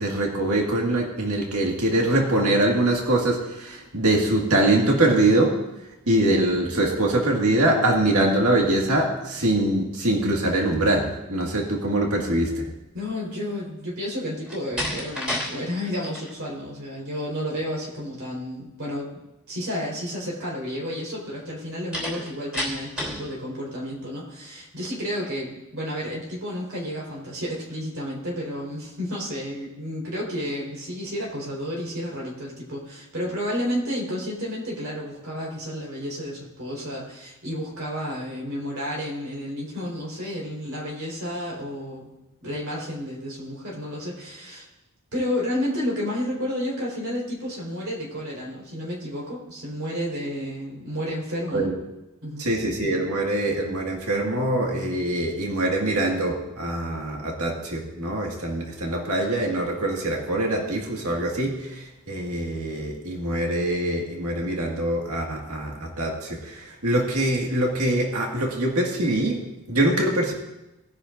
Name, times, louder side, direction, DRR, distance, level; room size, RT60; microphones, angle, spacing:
voice 1, 0.0-5.5 6.1-12.7 51.5-51.7 52.4-70.3, right 1 dB, 80° right, 0 dB, 1.9 m, -23 dB
voice 2, 12.9-19.1 19.5-42.1 42.4-44.7 45.1-51.7 52.2-52.5, equal, 65° right, -4 dB, 4.2 m, -31 dB
Slam, 14.4-15.5 15.8-16.3 21.9-23.3, left 1 dB, 5° right, 3.3 m, -30 dB
19.5 x 10.0 x 2.6 m, 0.96 s
head